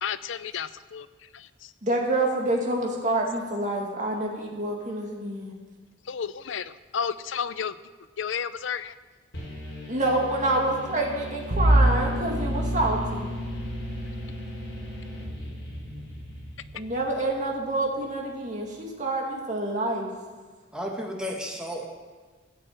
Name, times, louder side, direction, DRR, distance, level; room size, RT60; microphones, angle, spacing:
voice 1, 0.0-1.1 6.1-7.7 8.2-8.9, left 7 dB, 80° left, 15 dB, 0.5 m, -31 dB
voice 2, 1.8-5.5 9.9-13.3 16.7-20.1, right 2 dB, 40° right, -1 dB, 2.4 m, -27 dB
sound 1, 9.3-17.0, equal, 60° left, 5.2 m, -40 dB
Bowed string instrument, 11.5-16.6, right 1 dB, 70° right, 4.0 m, -27 dB
voice 3, 20.7-21.8, equal, 5° right, -1 dB, 1.8 m, -33 dB
15.0 x 6.6 x 8.7 m, 1.4 s
head